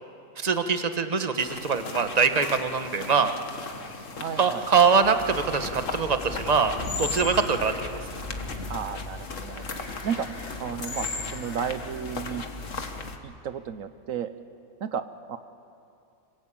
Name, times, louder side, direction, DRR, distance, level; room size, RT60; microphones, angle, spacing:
voice 1, 0.4-3.3 4.4-6.7 7.0-7.9, right 5 dB, 30° right, 8 dB, 1.3 m, -23 dB
sound 1, 1.4-13.2, left 4 dB, 60° left, 1.9 m, -37 dB
voice 2, 4.2-4.6 8.7-9.7 10.0-10.3 10.6-11.1 11.3-12.4 13.2-14.3 14.8-15.4, right 8 dB, 70° right, 11 dB, 1.2 m, -33 dB
Wind, 5.0-13.1, left 1 dB, 40° left, 2.7 m, -39 dB
26.5 x 24.0 x 8.7 m, 2.6 s
omnidirectional pair, 1.5 m